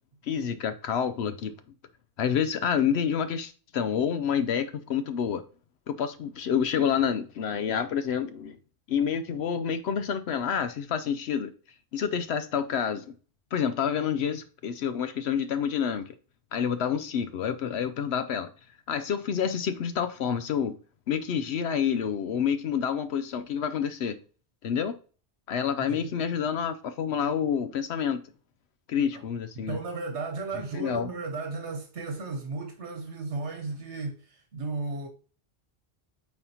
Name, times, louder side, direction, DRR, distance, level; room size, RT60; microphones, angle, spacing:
voice 1, 0.2-1.5 2.2-5.4 5.9-8.6 8.9-11.5 11.9-13.1 13.5-16.1 16.5-18.5 18.9-20.8 21.1-24.2 24.6-25.0 25.5-28.2 28.9-29.8 30.7-31.1, left 7 dB, 75° left, 0.9 m, -28 dB
voice 2, 25.8-26.1 29.1-29.2 29.5-35.1, right 3 dB, 80° right, 1.4 m, -35 dB
8.7 x 4.2 x 2.9 m
omnidirectional pair, 1.1 m